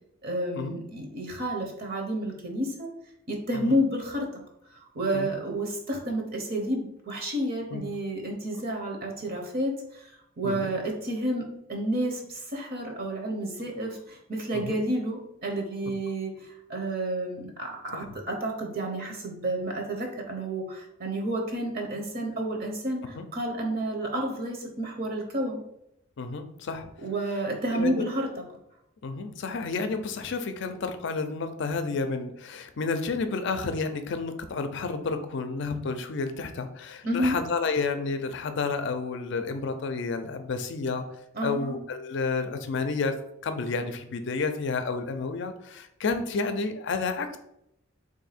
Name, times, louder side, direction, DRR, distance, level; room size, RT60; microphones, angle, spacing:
voice 1, 0.2-2.9 3.3-4.3 4.9-10.1 10.4-25.6 27.0-28.3 37.0-37.4 41.3-41.7, right 1 dB, 50° right, 2 dB, 0.8 m, -30 dB
voice 2, 10.4-10.7 14.5-14.8 17.9-18.0 23.1-23.2 26.2-26.9 27.7-28.1 29.0-41.0 41.4-43.1 43.4-47.4, left 4 dB, 60° left, 8 dB, 0.4 m, -30 dB
3.5 x 2.6 x 4.1 m, 0.77 s
head